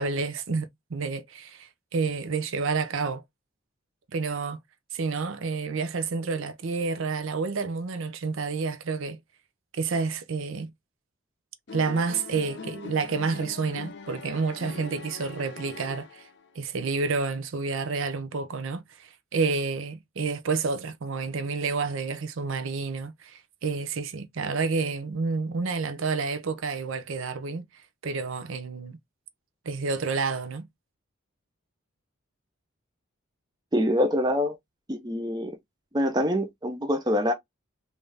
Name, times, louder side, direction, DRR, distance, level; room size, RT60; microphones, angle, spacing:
voice 1, 0.0-3.2 4.1-4.6 4.9-9.2 9.7-10.7 11.7-16.3 16.6-27.7 28.0-29.0 29.7-30.7, right 4 dB, 65° right, 0.6 m, -29 dB
sound 1, 11.7-16.6, left 4 dB, 55° left, 0.6 m, -42 dB
voice 2, 33.7-34.6 34.9-35.6 35.9-37.3, equal, 20° right, 0.5 m, -25 dB
3.5 x 2.6 x 3.2 m
head